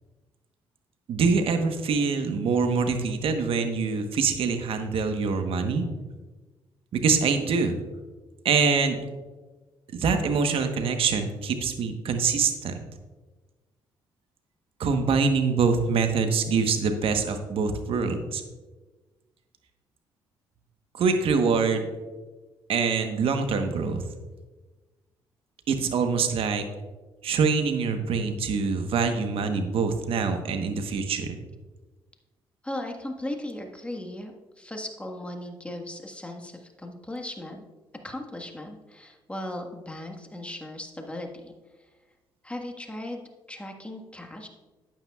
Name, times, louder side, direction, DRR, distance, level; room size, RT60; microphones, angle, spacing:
voice 1, 1.1-5.9 6.9-7.8 8.4-9.0 9.9-12.7 14.8-18.4 20.9-21.9 22.7-24.0 25.7-26.6 27.2-31.4, right 5 dB, 65° right, 6 dB, 1.1 m, -24 dB
voice 2, 32.6-37.6 38.0-41.5 41.8-41.9 42.4-43.2 43.5-44.5, left 1 dB, 10° left, 3 dB, 1.5 m, -37 dB
12.0 x 8.9 x 2.4 m, 1.2 s
supercardioid pair, 60°, 10 cm